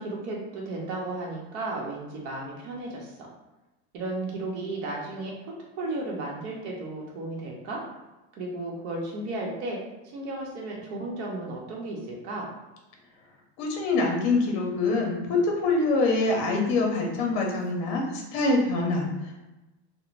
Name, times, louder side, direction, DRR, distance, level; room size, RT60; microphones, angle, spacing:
voice 1, 0.0-3.1 3.9-5.3 5.8-7.8 8.4-9.8 10.1-12.5, right 2 dB, 85° right, -2 dB, 0.8 m, -34 dB
voice 2, 13.6-19.4, left 3 dB, 50° left, 0 dB, 0.6 m, -25 dB
2.5 x 2.0 x 3.1 m, 1.0 s
cardioid pair, 175°, 33 cm